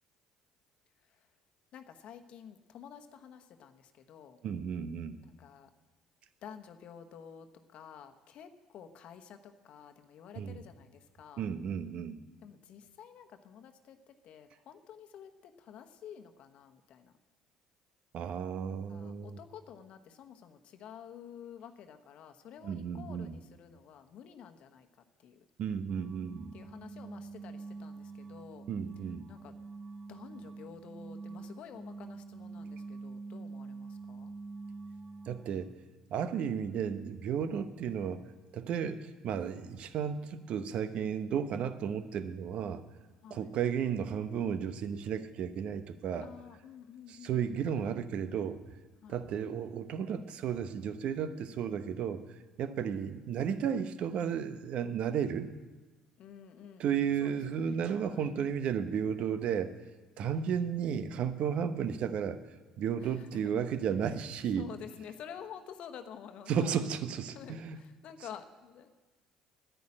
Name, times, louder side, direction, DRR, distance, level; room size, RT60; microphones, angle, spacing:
voice 1, 1.7-4.4 5.2-5.7 6.4-11.5 12.4-17.1 18.7-24.9 25.2-25.4 26.5-28.7 29.3-29.5 30.1-34.3 43.2-43.5 46.2-48.0 49.0-49.2 52.8-52.9 56.2-57.6 58.1-58.3 60.2-60.4 63.0-63.5 64.5-66.9 67.3-68.9, left 8 dB, 60° left, 7 dB, 1.1 m, -50 dB
voice 2, 4.4-5.2 10.4-10.6 11.4-12.2 18.1-19.4 22.6-23.4 25.6-26.6 28.7-29.3 35.3-35.7 36.1-38.2 38.5-42.8 43.3-46.3 47.1-48.6 49.1-52.2 52.6-55.5 56.8-59.7 60.2-62.4 62.8-64.7 66.5-67.8, right 8 dB, 60° right, 11 dB, 0.8 m, -33 dB
sound 1, 25.9-35.6, right 4 dB, 35° right, 1.1 m, -46 dB
10.5 x 9.2 x 8.7 m, 1.3 s
hypercardioid pair, 60°, 2 cm